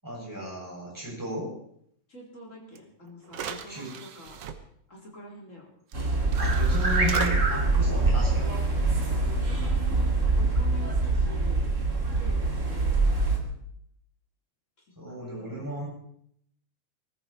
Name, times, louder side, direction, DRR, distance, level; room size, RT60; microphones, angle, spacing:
voice 1, 0.0-1.5 3.7-3.9 6.4-8.7 15.0-15.9, right 1 dB, 5° right, -4 dB, 7.6 m, -35 dB
voice 2, 2.1-4.4 4.9-5.7 9.1-11.7 12.1-13.3 15.1-15.7, equal, 25° left, -2 dB, 4.1 m, -46 dB
sound 1, 2.8-2.9 3.3-4.5 5.9-6.0 6.3-7.3, right 8 dB, 60° right, 1.8 m, -37 dB
sound 2, 5.9-13.4, right 3 dB, 25° right, 2.4 m, -24 dB
19.0 x 14.5 x 4.5 m, 0.70 s
omnidirectional pair, 3.5 m